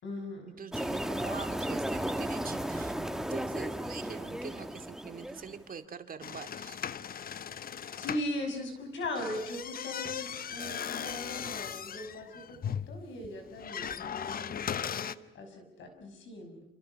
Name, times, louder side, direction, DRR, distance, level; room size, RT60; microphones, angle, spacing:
voice 1, 0.0-0.5 7.9-16.6, left 1 dB, 70° left, 6 dB, 6.1 m, -39 dB
voice 2, 0.6-6.8, right 6 dB, 45° right, 7 dB, 2.3 m, -44 dB
sound 1, 0.7-5.6, right 1 dB, 5° right, 1.3 m, -34 dB
sound 2, 6.2-8.3 9.0-15.1, left 8 dB, 45° left, 0.8 m, -38 dB
28.0 x 27.5 x 5.8 m, 0.82 s
cardioid pair, 90°, 20 cm